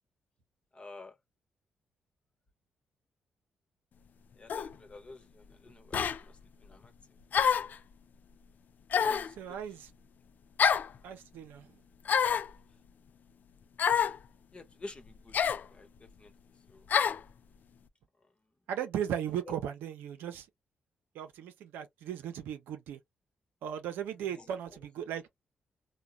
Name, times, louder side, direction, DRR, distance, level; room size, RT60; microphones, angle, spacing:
voice 1, 0.7-1.2 4.3-6.9 8.9-9.8 14.5-15.4 15.7-16.3 16.7-16.9 18.2-18.3 19.4-19.5 24.2-24.6, left 3 dB, 35° left, 0.9 m, -49 dB
sound 1, 4.5-4.7 5.9-6.2 7.3-7.8 8.9-9.3 10.6-10.9 12.0-12.5 13.8-14.2 15.3-15.6 16.9-17.2, left 7 dB, 60° left, 0.3 m, -27 dB
voice 2, 9.4-9.9 11.0-11.7 18.7-20.4 21.2-23.0 23.6-25.2, right 9 dB, 85° right, 0.6 m, -37 dB
3.8 x 2.2 x 2.2 m
supercardioid pair, 55°, 3 cm